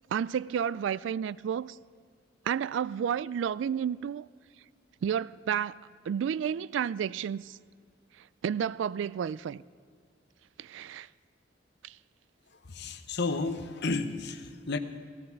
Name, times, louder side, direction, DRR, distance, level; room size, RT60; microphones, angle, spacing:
voice 1, 0.1-1.8 2.5-4.3 5.0-5.7 6.1-7.6 8.4-9.6 10.6-11.1 11.8-12.0, right 8 dB, 70° right, 0.3 m, -31 dB
voice 2, 12.6-14.8, left 3 dB, 60° left, 0.9 m, -32 dB
16.5 x 14.5 x 5.9 m
head